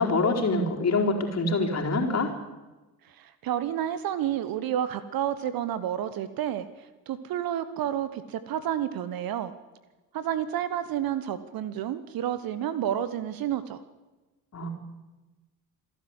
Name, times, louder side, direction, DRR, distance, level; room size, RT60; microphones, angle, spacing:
voice 1, 0.0-2.3 14.5-14.7, left 3 dB, 30° left, 1 dB, 4.2 m, -25 dB
voice 2, 3.0-9.5 10.1-13.8, right 10 dB, 45° right, 13 dB, 1.2 m, -30 dB
26.5 x 12.0 x 8.1 m, 1.2 s
figure-of-eight pair, 55°, 49 cm